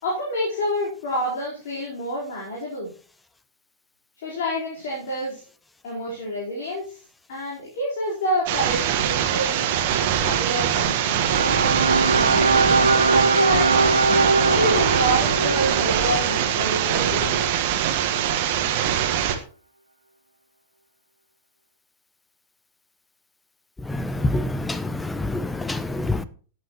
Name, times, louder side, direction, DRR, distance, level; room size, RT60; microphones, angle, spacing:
voice 1, 0.0-2.9 4.2-5.4 5.8-7.0 7.3-9.7 10.2-11.3 12.4-13.8 14.5-17.5, equal, 55° left, 4.4 m, -28 dB
sound 1, 8.5-19.4, right 9 dB, 50° right, 1.5 m, -23 dB
sound 2, 11.1-17.4, right 3 dB, 80° right, 1.3 m, -22 dB
voice 2, 23.9-26.2, left 2 dB, 10° left, 0.8 m, -26 dB
14.0 x 8.8 x 3.1 m
figure-of-eight pair, 90°, 0 cm